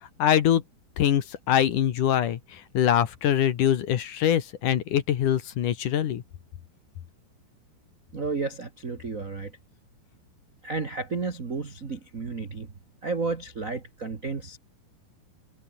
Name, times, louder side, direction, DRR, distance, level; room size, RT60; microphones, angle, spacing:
voice 1, 0.2-0.6 1.0-6.2, left 10 dB, 60° left, 2.8 m, -23 dB
voice 2, 8.1-9.6 10.6-12.7 13.0-14.6, right 4 dB, 45° right, 1.1 m, -32 dB
omnidirectional pair, 4.4 m